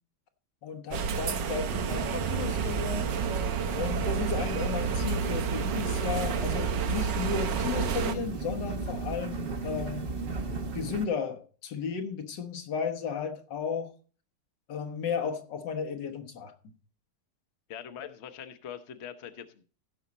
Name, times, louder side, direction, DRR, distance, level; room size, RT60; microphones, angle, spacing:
voice 1, 0.6-3.1 3.7-10.1 10.7-13.9 14.7-16.5, left 6 dB, 85° left, 1.9 m, -34 dB
sound 1, 0.9-8.1, right 7 dB, 90° right, 1.6 m, -30 dB
sound 2, 1.7-11.0, right 3 dB, 40° right, 1.1 m, -35 dB
voice 2, 17.7-19.6, left 9 dB, 50° left, 0.9 m, -42 dB
15.5 x 6.3 x 4.1 m
omnidirectional pair, 1.9 m